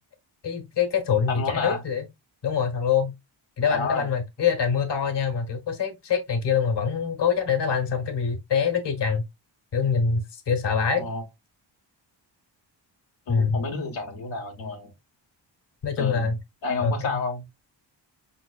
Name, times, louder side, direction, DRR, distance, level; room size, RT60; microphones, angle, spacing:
voice 1, 0.4-2.1 2.4-3.1 3.6-9.2 9.7-11.1 13.3-13.6 15.8-16.4 16.8-17.2, left 6 dB, 65° left, 1.4 m, -24 dB
voice 2, 1.3-1.8 3.7-4.1 11.0-11.2 13.3-14.9 16.0-16.3 16.6-17.4, left 3 dB, 80° left, 1.3 m, -30 dB
5.5 x 3.9 x 2.4 m
wide cardioid pair, 135°, 45 cm